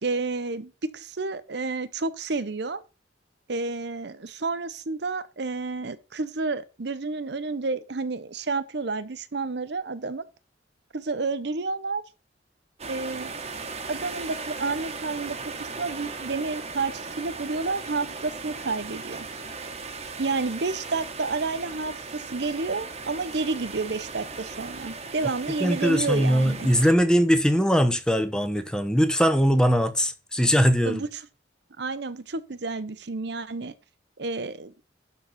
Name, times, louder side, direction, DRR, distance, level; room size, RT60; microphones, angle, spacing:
voice 1, 0.0-2.8 3.5-10.2 10.9-12.0 12.9-13.3 13.9-19.3 20.2-26.7 30.9-31.2 31.8-33.7 34.2-34.7, right 3 dB, 60° right, 0.8 m, -30 dB
sound 1, 12.8-26.9, right 4 dB, 35° right, 1.2 m, -37 dB
voice 2, 25.6-31.0, equal, 5° left, 0.8 m, -21 dB
11.5 x 4.1 x 5.8 m
head